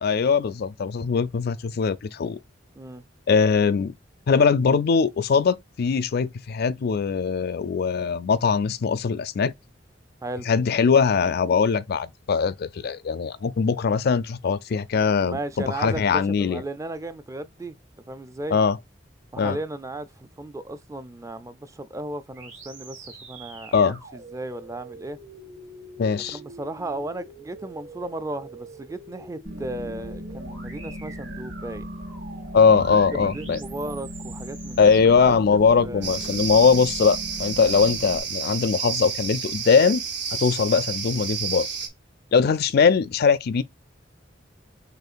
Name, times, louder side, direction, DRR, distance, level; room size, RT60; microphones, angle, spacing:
voice 1, 0.0-2.4 3.3-3.9 4.3-9.5 10.5-15.4 15.7-16.6 18.5-18.8 19.4-19.6 23.7-24.0 26.0-26.4 32.5-33.6 34.8-40.0 40.4-41.7 42.3-43.6, left 5 dB, 55° left, 0.4 m, -21 dB
voice 2, 15.2-17.8 18.1-18.6 19.3-25.2 26.3-31.9 32.9-34.8 35.2-36.1, right 2 dB, 15° right, 0.4 m, -35 dB
sound 1, 22.3-36.7, right 3 dB, 85° right, 2.5 m, -45 dB
sound 2, 29.5-38.2, equal, 50° right, 1.9 m, -38 dB
sound 3, 36.0-41.9, right 6 dB, 65° right, 1.0 m, -30 dB
6.5 x 2.4 x 2.5 m
head